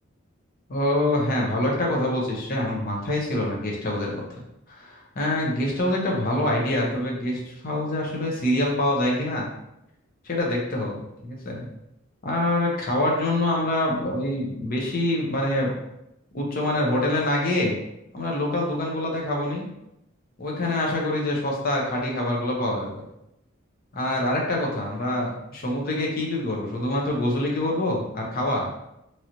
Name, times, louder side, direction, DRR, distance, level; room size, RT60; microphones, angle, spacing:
voice 1, 0.7-4.2 4.7-9.4 10.2-11.7 12.2-15.7 16.3-17.8 18.1-19.7 20.4-23.0 23.9-28.7, left 1 dB, 45° left, -2 dB, 0.8 m, -25 dB
3.1 x 2.9 x 2.6 m, 0.84 s
head